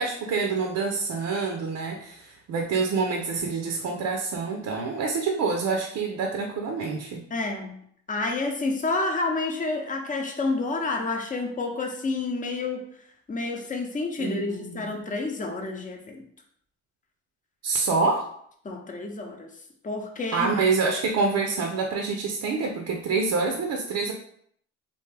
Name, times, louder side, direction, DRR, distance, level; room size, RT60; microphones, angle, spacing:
voice 1, 0.0-7.2 14.2-14.9 17.6-18.3 20.3-24.1, right 4 dB, 65° right, 2 dB, 0.6 m, -27 dB
voice 2, 7.3-7.8 8.1-12.8 13.3-16.2 18.6-19.5 19.8-20.5, left 3 dB, 25° left, 3 dB, 0.7 m, -29 dB
3.4 x 2.6 x 3.3 m, 0.65 s
cardioid pair, 90°, 30 cm